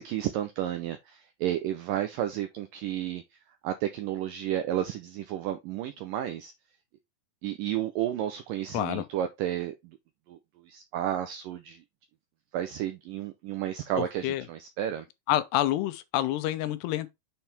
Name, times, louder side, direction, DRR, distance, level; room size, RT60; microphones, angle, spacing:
voice 1, 0.0-3.2 3.6-6.5 7.4-9.8 10.3-10.4 10.6-11.8 12.5-15.1, right 11 dB, 85° right, 1.9 m, -32 dB
voice 2, 8.7-9.1 13.9-14.4 15.3-17.1, left 14 dB, 90° left, 2.9 m, -28 dB
7.7 x 4.5 x 3.4 m
omnidirectional pair, 4.7 m